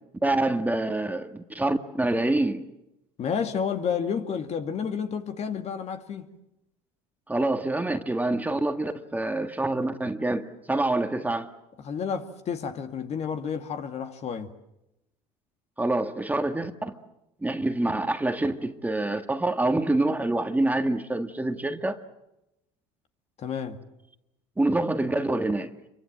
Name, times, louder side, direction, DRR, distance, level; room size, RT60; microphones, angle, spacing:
voice 1, 0.2-2.7 7.3-11.5 15.8-17.0 17.4-22.0 24.6-25.7, right 2 dB, 10° right, 1.7 m, -26 dB
voice 2, 3.2-6.3 11.8-14.5 23.4-23.8, left 7 dB, 45° left, 2.2 m, -30 dB
26.5 x 23.5 x 7.6 m
supercardioid pair, 90°, 15 cm